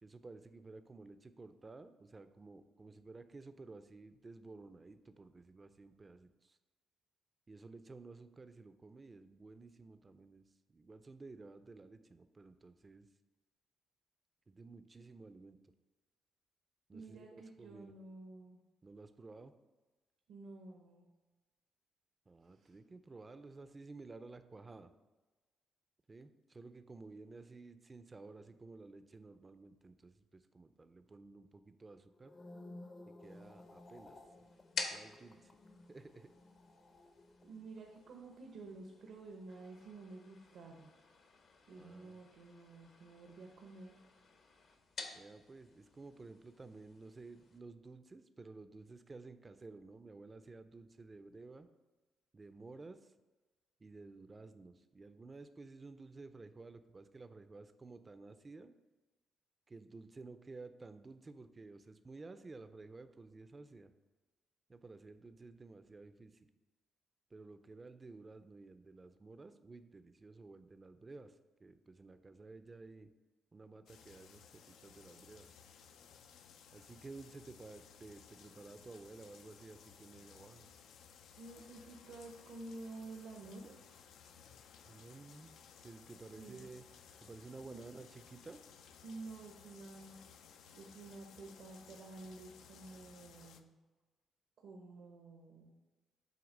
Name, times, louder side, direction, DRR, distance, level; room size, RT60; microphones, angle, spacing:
voice 1, 0.0-6.6 7.5-10.4 10.7-13.1 14.5-15.6 16.9-18.0 18.8-19.5 22.3-24.9 26.1-32.4 33.1-34.2 34.9-35.6 35.9-36.3 41.7-42.2 45.1-51.7 52.3-53.1 53.8-58.7 59.7-63.9 64.7-66.5 67.3-73.1 73.5-75.5 76.7-80.7 84.8-85.6 85.8-86.8 87.2-88.6, right 3 dB, 25° right, 10 dB, 0.5 m, -53 dB
voice 2, 16.9-18.6 20.3-21.1 22.6-22.7 37.4-40.9 41.7-43.9 81.4-83.7 86.4-86.6 87.6-88.0 89.0-90.2 90.7-93.7 94.6-95.7, right 3 dB, 75° right, 1 dB, 0.9 m, -51 dB
sound 1, 32.1-40.5 40.8-41.2, left 2 dB, 30° left, 0.6 m, -57 dB
sound 2, 33.2-47.6, left 4 dB, 60° left, 0.9 m, -51 dB
Shower turning on and off with drain noise, 73.9-93.6, left 7 dB, 80° left, 0.4 m, -59 dB
7.8 x 2.9 x 5.2 m, 1.2 s
cardioid pair, 90°, 0 cm